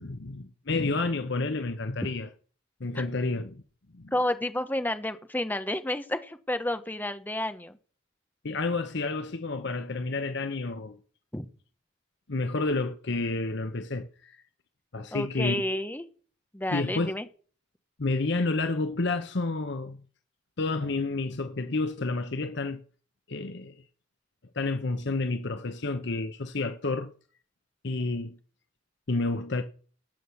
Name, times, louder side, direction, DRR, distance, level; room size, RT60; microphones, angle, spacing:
voice 1, 0.0-2.3 2.8-3.6 3.9-4.1 8.4-11.0 12.3-14.4 14.9-15.6 16.7-17.1 18.0-20.0 20.6-22.8 23.3-23.8 24.5-27.1 27.8-28.4 29.1-29.6, left 3 dB, 60° left, 0.9 m, -30 dB
voice 2, 4.1-7.8 11.3-11.5 15.1-16.1 16.5-17.3, left 1 dB, 10° left, 1.0 m, -30 dB
18.0 x 6.2 x 7.1 m
head